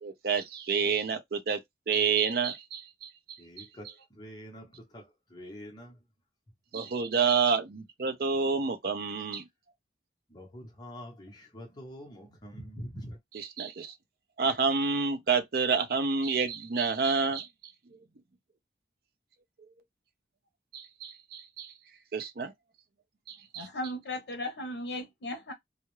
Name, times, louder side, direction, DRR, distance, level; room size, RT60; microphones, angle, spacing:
voice 1, 0.0-1.6 1.9-3.1 3.6-3.7 6.7-9.4 13.3-13.9 14.4-17.5 20.7-21.7 22.1-22.5 23.3-23.7, right 5 dB, 60° right, 0.5 m, -29 dB
voice 2, 3.4-3.8 4.2-4.7 4.9-5.0 5.3-5.9 10.3-13.2, equal, 25° left, 0.8 m, -44 dB
voice 3, 23.6-25.5, left 1 dB, 85° left, 0.6 m, -36 dB
2.2 x 2.0 x 3.0 m
head